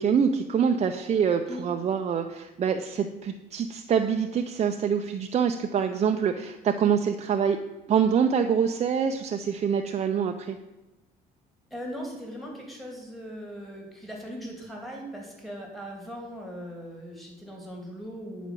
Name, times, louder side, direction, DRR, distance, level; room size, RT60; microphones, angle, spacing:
voice 1, 0.0-7.6 7.9-10.6, right 7 dB, 40° right, 5 dB, 0.7 m, -25 dB
voice 2, 11.7-18.5, equal, ahead, -1 dB, 3.0 m, -39 dB
9.7 x 5.1 x 7.6 m, 1.1 s
cardioid pair, 110°, 17 cm